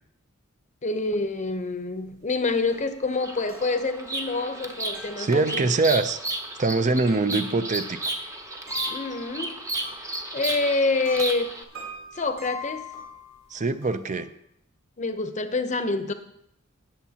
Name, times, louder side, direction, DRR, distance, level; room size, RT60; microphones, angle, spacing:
voice 1, 0.8-5.6 8.9-9.6 10.3-11.6 12.1-12.9 15.0-16.1, left 3 dB, 35° left, 9 dB, 0.8 m, -27 dB
sound 1, 1.1-1.2 1.5-1.6 1.8-10.6 11.0-14.2, left 3 dB, 80° right, 4.6 m, -44 dB
Bird vocalization bird call bird song, 3.1-11.6, right 2 dB, 15° right, 0.9 m, -33 dB
voice 2, 5.2-6.2 6.6-8.1 13.5-14.3, right 3 dB, 35° right, 11 dB, 0.5 m, -23 dB
19.0 x 7.2 x 2.9 m, 0.76 s
head